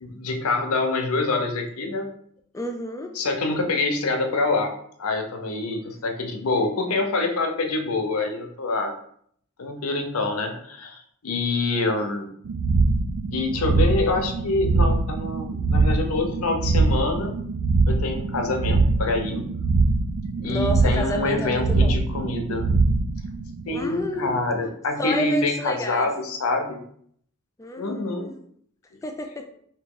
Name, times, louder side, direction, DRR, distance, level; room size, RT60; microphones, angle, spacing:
voice 1, 0.0-2.1 3.1-4.7 5.0-8.9 9.6-12.3 13.3-17.3 17.9-19.4 20.4-22.8 23.7-26.8 27.8-28.3, left 3 dB, 90° left, 5 dB, 0.6 m, -26 dB
voice 2, 2.5-3.1 20.4-22.0 23.7-24.4 25.0-26.1 27.6-28.4 29.0-29.4, left 1 dB, 15° left, 4 dB, 0.4 m, -30 dB
sound 1, 12.4-24.2, right 3 dB, 70° right, 0.3 m, -23 dB
2.9 x 2.8 x 3.7 m, 0.65 s
head